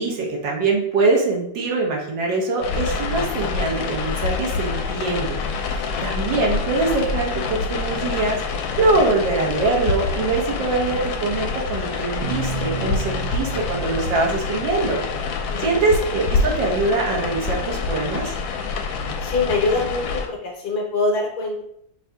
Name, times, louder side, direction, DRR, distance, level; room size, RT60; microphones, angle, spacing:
voice 1, 0.0-5.4 5.7-8.4 8.8-15.0 15.6-18.3, right 3 dB, 75° right, -1 dB, 1.7 m, -23 dB
sound 1, 2.6-20.3, left 4 dB, 80° left, 1.3 m, -26 dB
sound 2, 12.2-16.3, right 4 dB, 55° right, 0.8 m, -33 dB
voice 2, 15.5-15.9 19.2-21.6, left 3 dB, 65° left, 1 dB, 1.3 m, -24 dB
5.4 x 2.7 x 3.4 m, 0.70 s
omnidirectional pair, 2.0 m